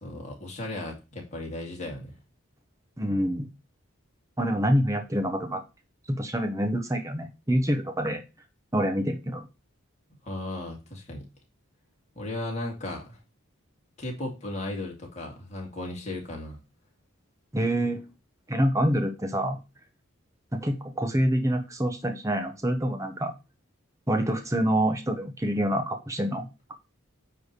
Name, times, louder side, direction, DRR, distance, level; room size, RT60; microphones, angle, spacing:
voice 1, 0.0-2.2 10.2-11.3 12.2-13.2 14.0-16.6, left 2 dB, 35° left, 0 dB, 2.5 m, -35 dB
voice 2, 3.0-3.5 4.4-5.6 6.1-8.2 8.7-9.5 17.5-18.1 18.5-19.6 20.6-23.3 24.1-26.5, equal, 15° right, 6 dB, 0.9 m, -26 dB
9.5 x 3.4 x 6.7 m, 0.28 s
head